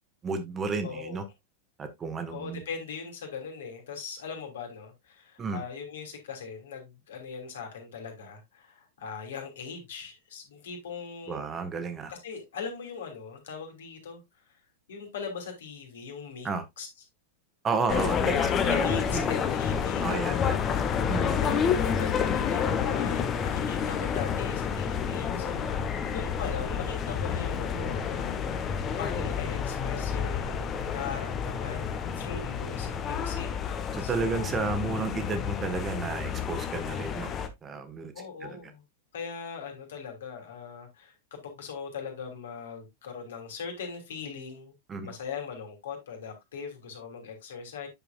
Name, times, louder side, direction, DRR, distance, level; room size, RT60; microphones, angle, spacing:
voice 1, 0.2-1.2 1.8-2.6 5.4-5.6 11.3-12.1 16.4-16.6 17.6-19.3 20.0-20.5 21.1-21.4 33.9-37.3 37.6-38.1 38.4-38.6 44.9-45.1, right 4 dB, 20° right, 1.5 m, -32 dB
voice 2, 0.8-1.2 2.3-11.4 12.1-14.2 14.9-16.5 16.8-16.9 18.3-20.6 21.4-33.5 34.0-34.6 38.1-38.8 39.1-44.7 45.0-47.9, left 6 dB, 60° left, 2.9 m, -40 dB
sound 1, 17.9-37.5, left 7 dB, 25° left, 1.2 m, -29 dB
9.3 x 6.9 x 2.4 m
figure-of-eight pair, 90°, 0 cm